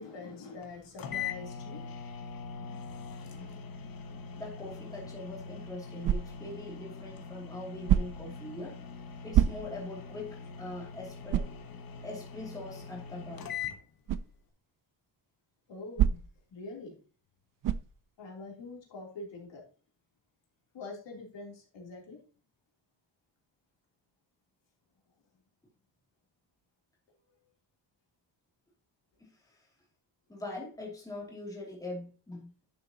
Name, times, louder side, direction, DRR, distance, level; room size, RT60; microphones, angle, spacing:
voice 1, 0.0-3.7 15.7-16.2 16.5-17.0 18.2-19.6 20.7-22.2 30.3-30.4, left 3 dB, 70° left, 0 dB, 3.3 m, -46 dB
sound 1, 0.6-0.7 1.0-13.8, left 6 dB, 50° left, 1.2 m, -42 dB
voice 2, 4.4-8.8 9.2-11.5 12.0-13.5 29.2-29.7 30.3-32.5, left 2 dB, 10° left, -3 dB, 2.6 m, -42 dB
sound 2, 6.0-6.6 7.8-8.4 9.3-9.9 10.4-10.5 11.3-11.6 14.1-14.3 16.0-16.5 17.6-18.0, right 10 dB, 50° right, 0.5 m, -27 dB
11.0 x 6.7 x 2.9 m, 0.36 s
wide cardioid pair, 165°, 45 cm